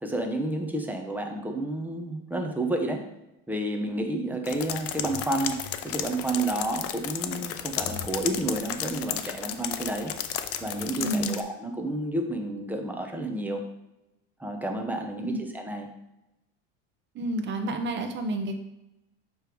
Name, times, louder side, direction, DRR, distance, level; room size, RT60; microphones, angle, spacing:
voice 1, 0.0-3.1 3.5-5.6 5.8-10.1 10.6-13.6 14.4-15.9, right 1 dB, 5° right, 3 dB, 0.8 m, -30 dB
sound 1, 4.5-11.4, left 10 dB, 50° left, 0.6 m, -33 dB
voice 2, 11.0-11.4 15.2-15.4 17.1-18.6, right 1 dB, 35° right, 6 dB, 0.9 m, -29 dB
6.8 x 3.4 x 4.5 m, 0.92 s
supercardioid pair, 120°, 31 cm